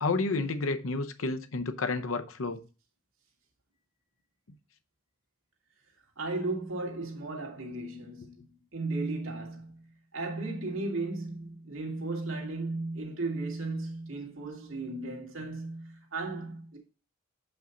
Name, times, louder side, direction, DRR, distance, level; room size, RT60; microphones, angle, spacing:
voice 1, 0.0-2.6, left 3 dB, 85° left, 0.7 m, -30 dB
voice 2, 6.2-9.9 10.1-16.8, right 2 dB, 90° right, 2.0 m, -35 dB
6.9 x 5.4 x 3.8 m
head